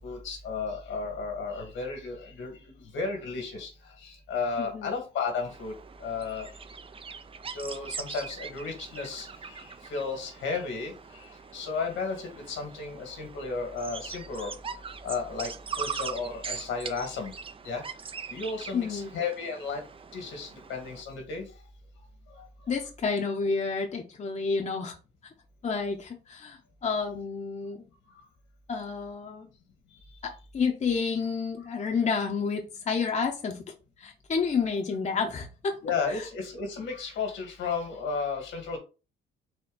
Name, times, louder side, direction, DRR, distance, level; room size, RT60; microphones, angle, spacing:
voice 1, 0.0-3.7 4.0-5.7 6.0-6.5 7.5-14.5 15.0-15.5 15.8-17.3 17.6-17.8 18.3-19.8 20.1-21.5 22.3-22.5 31.6-31.7 35.8-38.8, left 4 dB, 80° left, 3 dB, 1.7 m, -33 dB
voice 2, 4.6-4.9 18.7-19.1 22.7-25.0 25.6-27.8 28.7-29.5 30.2-33.6 34.0-35.8 36.1-36.2, left 5 dB, 35° left, 2 dB, 0.8 m, -30 dB
sound 1, 5.5-21.0, right 6 dB, 25° right, 0.4 m, -41 dB
4.3 x 2.7 x 3.9 m, 0.33 s
cardioid pair, 90°, 20 cm